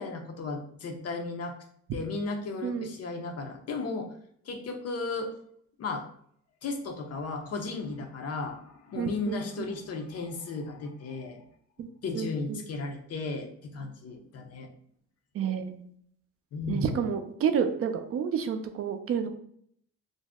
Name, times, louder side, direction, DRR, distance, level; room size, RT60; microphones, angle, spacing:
voice 1, 0.0-1.5 1.9-4.1 4.5-5.3 5.8-6.0 6.6-11.4 12.0-14.7 16.5-17.0, left 3 dB, 55° left, 4 dB, 0.6 m, -35 dB
voice 2, 2.6-2.9 9.0-9.7 11.8-11.9 12.1-12.6 15.3-15.9 16.7-19.3, right 7 dB, 50° right, 7 dB, 0.4 m, -30 dB
2.6 x 2.0 x 3.4 m, 0.66 s
cardioid pair, 90°, 30 cm